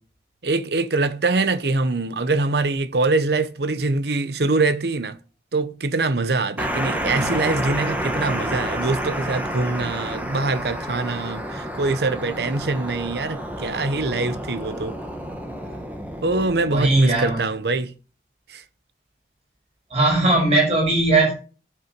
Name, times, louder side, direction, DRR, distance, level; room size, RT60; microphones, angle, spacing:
voice 1, 0.4-5.2 5.5-15.0 16.2-17.9 18.5-18.6, right 3 dB, 65° right, 0.8 m, -23 dB
sound 1, 6.6-17.1, equal, 10° right, 1.4 m, -30 dB
voice 2, 16.7-17.4 19.9-21.3, right 2 dB, 35° right, 5.7 m, -19 dB
8.7 x 8.3 x 5.1 m
head